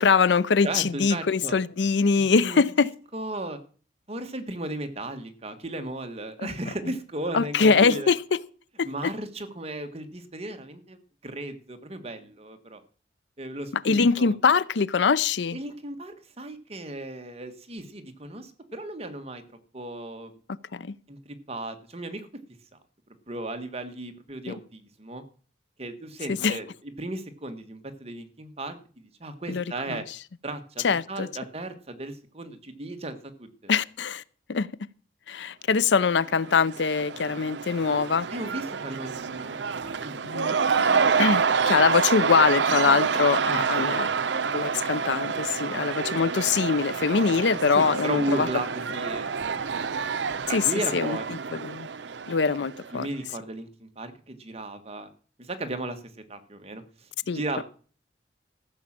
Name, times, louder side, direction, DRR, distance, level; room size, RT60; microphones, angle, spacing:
voice 1, 0.0-2.9 7.3-8.4 8.8-9.1 13.8-15.6 20.7-20.9 26.3-26.6 29.5-29.6 29.9-30.0 30.8-31.3 33.7-34.2 34.5-34.7 35.3-38.3 40.2-40.9 41.2-44.1 44.5-48.5 50.5-50.6 50.9-51.2 51.5-51.9 52.3-53.1 57.3-57.4, left 5 dB, 80° left, 0.6 m, -23 dB
voice 2, 0.6-1.5 2.1-2.6 3.1-3.6 4.1-8.1 8.8-12.8 13.4-14.4 15.5-19.4 19.7-20.4 21.1-22.3 23.3-25.2 25.8-30.0 30.4-33.8 38.3-40.5 40.9-41.1 43.5-44.1 47.1-47.3 47.7-49.9 50.5-51.2 52.9-55.1 55.4-56.0 56.3-57.6, right 1 dB, 35° right, 1.5 m, -35 dB
Cheering / Crowd, 36.1-53.0, right 5 dB, 80° right, 0.7 m, -28 dB
14.0 x 6.2 x 7.4 m
head